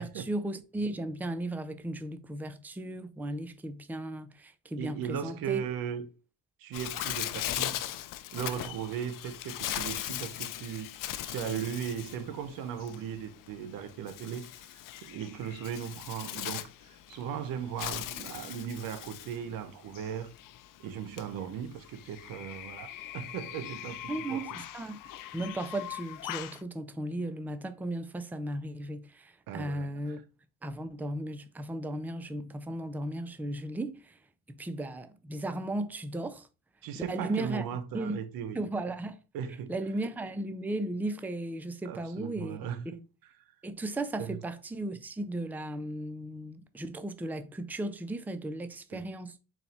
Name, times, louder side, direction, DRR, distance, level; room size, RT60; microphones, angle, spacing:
voice 1, 0.0-5.6 24.1-30.2 30.6-34.2 34.5-36.5 36.9-37.7 37.9-38.2 38.5-39.2 39.7-42.7 43.6-49.4, right 1 dB, 5° right, 0.4 m, -36 dB
voice 2, 4.8-6.1 6.6-7.8 8.3-10.9 11.3-20.3 20.8-24.4 29.5-30.2 36.8-38.6 39.3-39.7 41.8-43.0 44.2-44.4 48.9-49.0, right 8 dB, 85° right, 0.6 m, -37 dB
Bird, 6.7-26.6, left 13 dB, 70° left, 0.5 m, -40 dB
4.1 x 2.3 x 4.1 m
cardioid pair, 80°, 34 cm